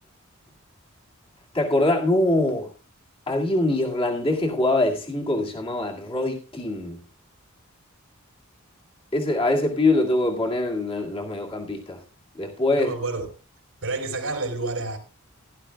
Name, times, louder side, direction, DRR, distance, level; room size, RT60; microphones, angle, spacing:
voice 1, 1.5-2.7 3.3-7.0 9.1-12.0 12.4-12.9, left 2 dB, 25° left, 2.0 m, -23 dB
voice 2, 12.8-13.3 13.8-15.0, right 3 dB, 80° right, 3.7 m, -29 dB
17.0 x 11.0 x 2.3 m
head